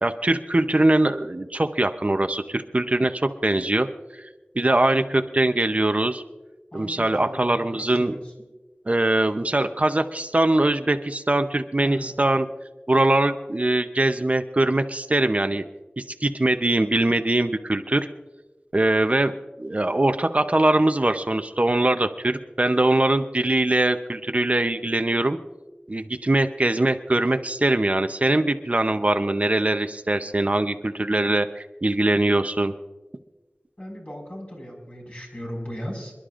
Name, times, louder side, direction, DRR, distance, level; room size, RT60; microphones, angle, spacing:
voice 1, 0.0-3.9 4.1-4.3 4.5-6.2 6.7-8.1 8.9-12.5 12.9-15.6 16.0-18.1 18.7-25.4 25.9-32.7, right 2 dB, 40° right, 8 dB, 0.7 m, -22 dB
voice 2, 4.8-5.2 6.7-7.4 7.8-8.2 11.8-12.1 33.8-36.1, equal, 40° left, -1 dB, 5.2 m, -37 dB
27.5 x 11.5 x 2.5 m, 1.1 s
wide cardioid pair, 55°, 4 cm